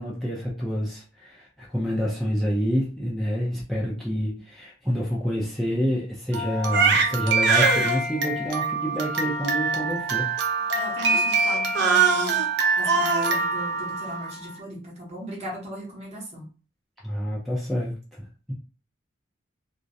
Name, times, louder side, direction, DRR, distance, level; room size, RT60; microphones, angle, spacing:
voice 1, 0.0-10.3 17.0-18.0, equal, ahead, -6 dB, 0.4 m, -27 dB
Crying sobbing, 6.3-14.5, right 4 dB, 60° right, 0.4 m, -23 dB
voice 2, 10.7-12.3 12.8-16.5, right 1 dB, 35° right, -2 dB, 0.8 m, -37 dB
2.3 x 2.0 x 2.6 m, 0.37 s
head